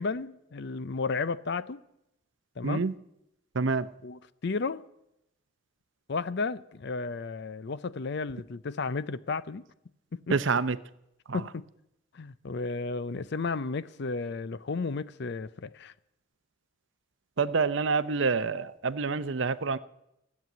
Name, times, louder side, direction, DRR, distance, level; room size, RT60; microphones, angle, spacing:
voice 1, 0.0-1.8 2.6-2.8 4.0-4.8 6.1-9.6 10.1-10.4 11.3-11.6 12.1-15.9, left 4 dB, 55° left, 0.5 m, -33 dB
voice 2, 2.6-2.9 3.6-3.9 10.3-10.8 11.3-11.4 17.4-19.8, right 4 dB, 60° right, 0.6 m, -27 dB
15.5 x 7.5 x 9.3 m
head